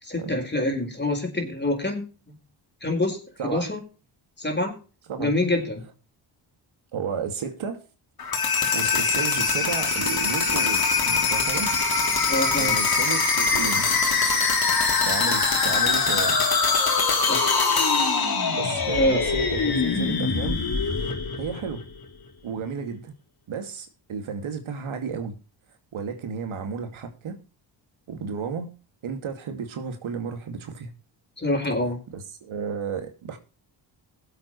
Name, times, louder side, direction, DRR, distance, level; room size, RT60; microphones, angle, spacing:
voice 1, 0.0-2.4 2.8-3.8 4.4-4.7 5.2-5.8 12.3-12.8 17.2-17.5 18.9-19.3 31.4-32.0, left 1 dB, 20° left, 4.7 m, -26 dB
voice 2, 6.9-7.8 8.7-11.8 12.6-13.9 15.0-16.4 18.5-20.6 21.0-21.8 22.4-23.1 23.5-25.3 25.9-27.4 28.1-28.7 29.0-30.9 32.1-33.4, right 6 dB, 70° right, 2.5 m, -33 dB
sound 1, 8.2-22.0, left 4 dB, 45° left, 3.4 m, -23 dB
20.5 x 7.9 x 3.2 m
cardioid pair, 60°, 50 cm